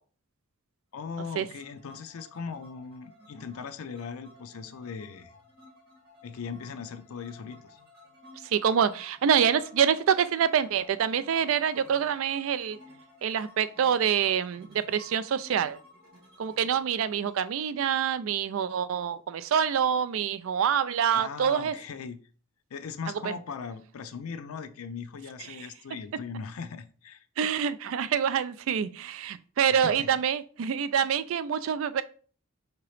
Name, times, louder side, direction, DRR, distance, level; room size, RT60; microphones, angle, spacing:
voice 1, 0.9-5.3 6.2-7.8 21.1-22.2 22.7-27.3 29.7-30.1, left 5 dB, 85° left, 0.4 m, -39 dB
sound 1, 1.0-18.7, left 1 dB, 45° right, 2.1 m, -55 dB
voice 2, 8.4-12.8 13.2-15.8 16.4-21.7 23.2-23.3 27.4-32.0, right 8 dB, 70° right, 0.3 m, -26 dB
4.7 x 2.9 x 3.1 m
head